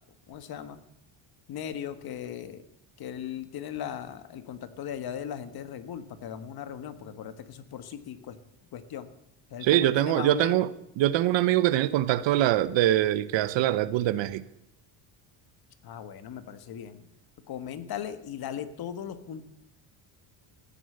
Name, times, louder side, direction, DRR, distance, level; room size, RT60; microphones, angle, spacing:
voice 1, 0.3-0.8 1.5-2.6 3.0-8.4 8.7-9.1 9.5-10.6 15.8-17.1 17.5-19.4, left 9 dB, 50° left, 1.5 m, -38 dB
voice 2, 9.6-10.7 11.0-14.4, right 13 dB, 65° right, 0.9 m, -23 dB
15.0 x 10.0 x 8.0 m
cardioid pair, 160°, 48 cm